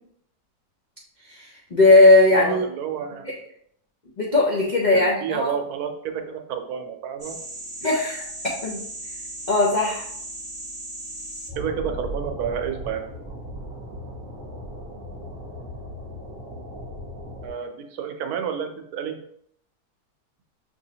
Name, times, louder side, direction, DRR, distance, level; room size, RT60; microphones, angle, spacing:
voice 1, 1.3-2.6 3.2-3.3 4.2-5.5 7.8-8.2 8.6-8.8 9.5-10.1, left 2 dB, 60° left, -3 dB, 0.4 m, -18 dB
voice 2, 2.3-3.3 4.9-7.4 11.6-13.1 17.4-19.2, right 7 dB, 75° right, 6 dB, 1.1 m, -30 dB
sound 1, 7.2-17.5, right 1 dB, 20° right, 1.1 m, -37 dB
5.9 x 2.7 x 2.8 m, 0.69 s
omnidirectional pair, 1.7 m